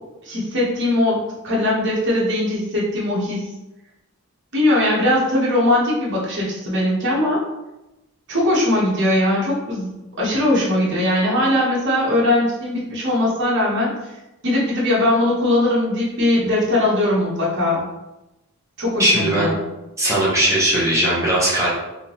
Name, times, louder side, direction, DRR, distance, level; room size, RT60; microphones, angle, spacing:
voice 1, 0.2-3.5 4.5-7.4 8.3-14.0 14.4-17.8 18.8-19.6, left 1 dB, 55° right, -6 dB, 1.1 m, -20 dB
voice 2, 19.0-19.5 20.0-21.7, right 1 dB, 15° right, -8 dB, 1.1 m, -18 dB
3.7 x 2.7 x 2.9 m, 0.99 s
head